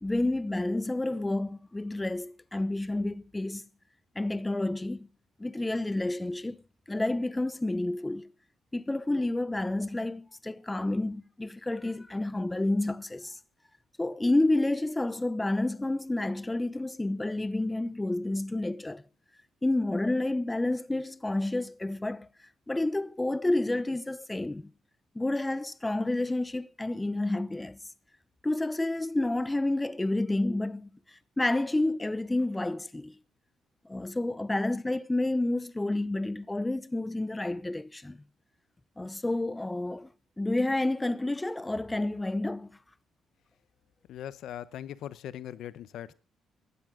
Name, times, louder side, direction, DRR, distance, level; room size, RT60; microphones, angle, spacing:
voice 1, 0.0-3.6 4.2-5.1 5.4-6.6 6.9-8.3 8.7-13.4 14.0-19.0 19.6-22.3 22.7-24.7 25.1-27.8 28.4-33.2 33.9-38.2 39.0-40.1 40.4-42.7, left 2 dB, 15° left, 0.6 m, -30 dB
voice 2, 44.1-46.1, left 11 dB, 80° left, 0.8 m, -40 dB
17.0 x 12.5 x 3.8 m
cardioid pair, 90°, 0 cm